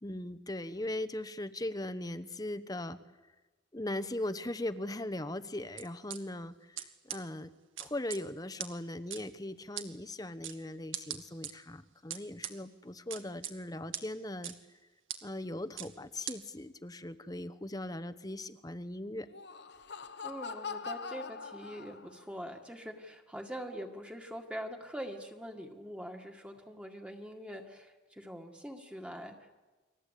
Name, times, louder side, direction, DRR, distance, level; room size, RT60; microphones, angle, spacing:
voice 1, 0.0-3.0 3.7-7.5 7.8-14.5 15.2-19.3, left 1 dB, 20° left, 12 dB, 0.9 m, -39 dB
sound 1, 5.8-6.2 6.8-6.9 7.1-7.2 7.8-8.2 8.6-8.7 9.1-9.2 9.8-9.9 10.4-10.6 10.9-11.5 12.1-12.5 13.1-13.5 13.9-14.0 14.4-14.5 15.1-15.2 15.8-15.9 16.3-16.4, right 11 dB, 75° right, 2.0 m, -38 dB
Laughter, 19.2-22.3, left 5 dB, 55° left, 1.2 m, -43 dB
voice 2, 20.2-29.5, equal, 5° right, 3 dB, 1.9 m, -43 dB
30.0 x 23.0 x 8.4 m, 1.2 s
head